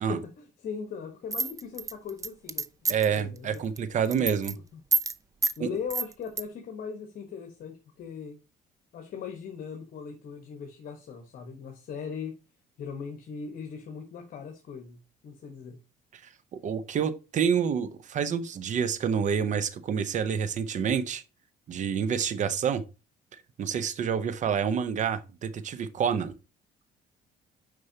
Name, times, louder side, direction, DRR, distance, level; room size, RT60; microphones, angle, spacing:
voice 1, 0.1-3.6 4.2-4.3 5.6-8.4 8.9-12.3 12.8-15.8, left 6 dB, 55° left, 1.2 m, -39 dB
sound 1, 1.3-3.2 3.5-3.8 4.0-4.5 4.9-5.1 5.4-5.6 5.9-6.4, right 4 dB, 20° right, 0.4 m, -28 dB
voice 2, 2.9-4.5 5.6-5.7 16.1-16.2 16.5-21.2 21.7-22.8 23.3-26.3, right 7 dB, 45° right, 0.8 m, -28 dB
6.5 x 5.3 x 2.8 m
cardioid pair, 110°, 17 cm